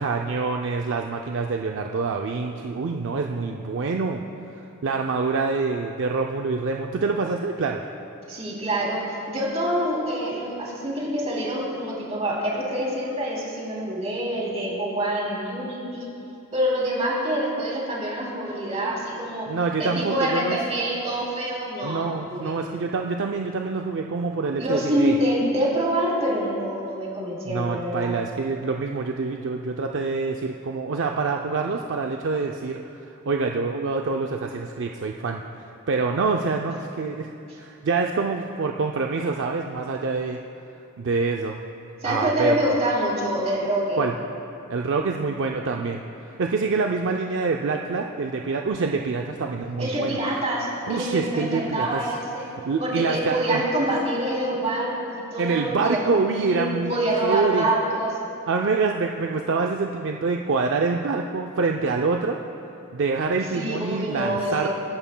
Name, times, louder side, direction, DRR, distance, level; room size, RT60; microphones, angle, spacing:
voice 1, 0.0-4.2 4.8-7.8 19.5-20.6 21.8-25.2 27.5-32.8 33.3-35.4 35.9-37.3 37.6-40.4 41.0-41.6 42.0-42.6 44.0-44.1 44.7-50.2 50.9-52.1 52.5-53.9 55.4-56.9 57.2-57.7 58.5-62.4 62.9-64.7, right 4 dB, 60° right, 2 dB, 0.5 m, -26 dB
voice 2, 8.3-16.0 16.5-19.5 19.8-22.5 24.6-28.2 42.0-44.0 49.8-52.5 52.8-56.6 56.9-58.1 63.5-64.7, right 1 dB, 30° right, -4 dB, 3.0 m, -26 dB
22.0 x 11.0 x 2.2 m, 2.8 s
head